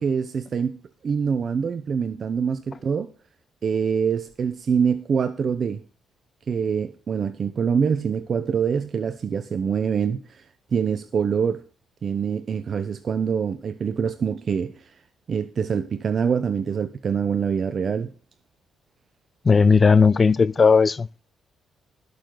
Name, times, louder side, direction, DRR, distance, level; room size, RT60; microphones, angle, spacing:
voice 1, 0.0-3.1 3.6-5.8 6.5-10.4 10.7-11.6 12.0-14.9 15.3-18.1, right 6 dB, 50° right, 0.8 m, -25 dB
voice 2, 19.5-21.2, left 5 dB, 35° left, 0.4 m, -16 dB
20.0 x 6.8 x 3.9 m
cardioid pair, 90°, 0 cm